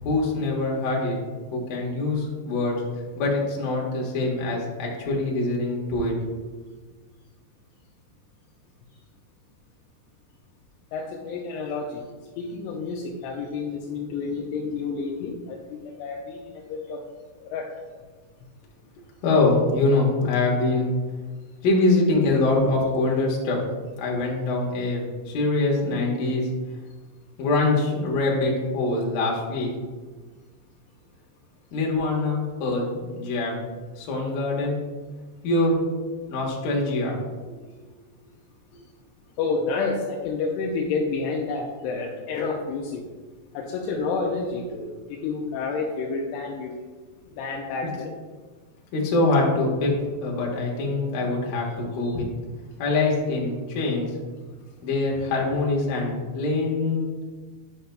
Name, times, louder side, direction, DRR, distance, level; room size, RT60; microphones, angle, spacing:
voice 1, 0.0-1.2 1.5-6.2 19.2-20.9 21.6-23.6 24.0-26.5 27.4-29.7 31.7-33.6 34.0-34.8 35.4-35.8 36.3-37.2 48.9-49.9 50.2-52.3 52.8-54.1 54.8-57.1, left 2 dB, 65° left, -2 dB, 2.4 m, -24 dB
voice 2, 10.9-12.0 12.4-17.0 17.4-17.7 39.4-43.0 43.5-46.8 47.4-48.1 52.0-52.1, left 4 dB, 85° left, 0 dB, 2.4 m, -29 dB
9.2 x 5.7 x 2.2 m, 1.4 s
omnidirectional pair, 5.2 m